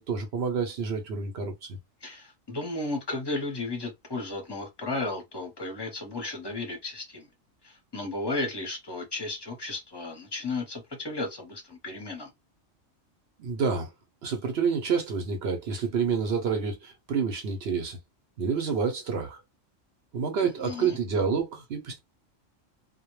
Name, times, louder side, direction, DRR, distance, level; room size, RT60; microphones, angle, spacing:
voice 1, 0.0-1.8 13.4-13.9 14.2-18.0 18.4-19.4 20.1-22.0, right 5 dB, 60° right, 0.8 m, -28 dB
voice 2, 2.0-7.3 7.6-12.3 20.6-21.0, left 2 dB, 25° left, 0.7 m, -34 dB
2.2 x 2.2 x 3.0 m
omnidirectional pair, 1.4 m